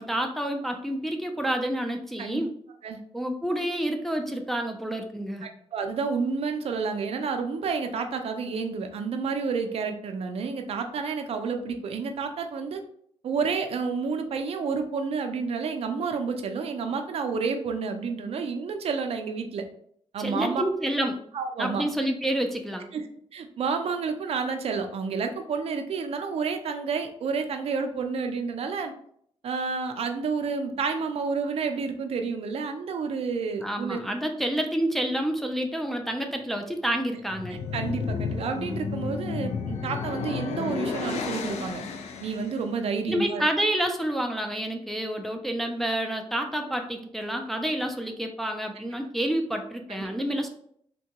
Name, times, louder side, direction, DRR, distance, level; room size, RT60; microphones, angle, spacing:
voice 1, 0.0-2.5 3.1-5.5 20.2-21.2 21.6-22.9 33.6-37.6 43.1-50.5, right 1 dB, ahead, 3 dB, 0.3 m, -28 dB
voice 2, 5.4-12.8 13.2-19.6 20.1-20.6 21.3-21.8 22.9-23.1 23.3-28.9 29.4-34.0 37.7-41.8 42.2-43.4 49.9-50.1, right 5 dB, 65° right, 6 dB, 0.4 m, -30 dB
sound 1, 37.2-42.6, left 5 dB, 90° left, 0.4 m, -32 dB
3.5 x 2.2 x 2.8 m, 0.65 s
wide cardioid pair, 125°, 11 cm